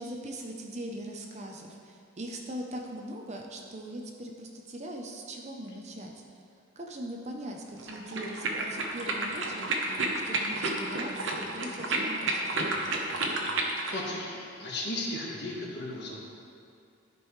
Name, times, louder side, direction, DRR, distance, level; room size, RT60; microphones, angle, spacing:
voice 1, 0.0-6.1 6.8-9.8 10.3-12.7, right 1 dB, 30° right, 1 dB, 0.7 m, -40 dB
sound 1, 7.8-14.0, right 2 dB, 60° right, 0.9 m, -31 dB
voice 2, 13.9-16.2, left 1 dB, 50° left, -3 dB, 1.4 m, -35 dB
13.0 x 5.3 x 3.2 m, 2.4 s
head